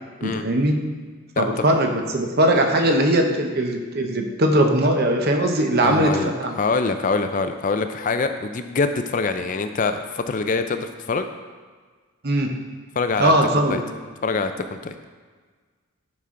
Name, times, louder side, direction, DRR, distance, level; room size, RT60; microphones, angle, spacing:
voice 1, 0.2-0.8 1.4-6.6 12.2-12.5 13.2-13.9, right 1 dB, 50° right, 4 dB, 0.8 m, -20 dB
voice 2, 5.8-11.3 13.0-13.3 13.7-13.8 14.2-14.9, left 4 dB, 40° left, 8 dB, 0.4 m, -24 dB
10.0 x 6.0 x 3.7 m, 1.5 s
head